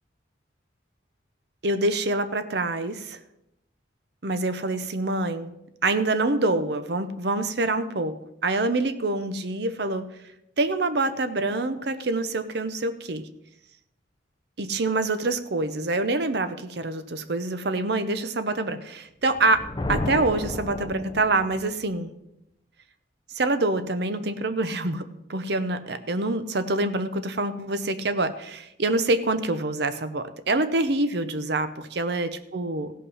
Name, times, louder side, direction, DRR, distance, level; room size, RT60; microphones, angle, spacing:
voice 1, 1.6-3.2 4.2-5.5 5.8-10.1 10.6-13.3 14.6-22.1 23.3-32.9, right 2 dB, 55° right, 11 dB, 0.7 m, -26 dB
Thunder, 19.3-21.7, left 2 dB, 20° left, 0.6 m, -32 dB
16.0 x 5.6 x 5.5 m, 0.83 s
head